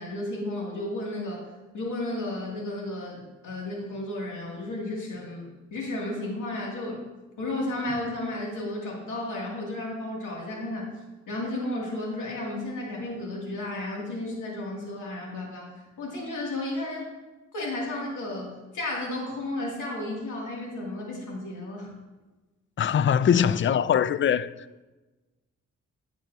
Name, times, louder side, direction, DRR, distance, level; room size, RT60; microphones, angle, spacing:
voice 1, 0.0-1.5 1.7-7.0 7.4-10.9 11.3-17.1 17.5-21.9, left 1 dB, 70° left, 2.4 m, -33 dB
voice 2, 22.8-24.5, left 8 dB, 40° left, 0.4 m, -22 dB
9.0 x 8.6 x 2.7 m
cardioid pair, 70°, 31 cm